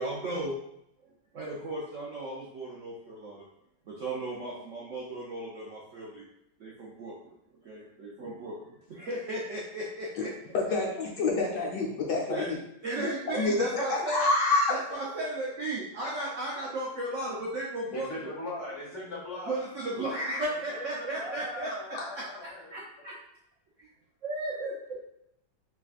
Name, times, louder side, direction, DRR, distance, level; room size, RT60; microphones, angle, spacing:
voice 1, 0.0-0.5 1.0-3.5 3.9-6.2 6.6-7.3 7.6-10.5 12.3-12.5 12.8-14.3 14.7-18.3 19.5-23.2 23.8-23.9 24.2-24.8, right 1 dB, 75° right, -4 dB, 0.7 m, -35 dB
voice 2, 10.5-12.6 13.0-14.7 21.9-22.1, left 3 dB, 70° left, -3 dB, 1.2 m, -28 dB
voice 3, 17.9-19.6 20.5-22.7, left 1 dB, 40° left, -5 dB, 1.3 m, -40 dB
3.7 x 3.4 x 2.4 m, 0.78 s
omnidirectional pair, 2.1 m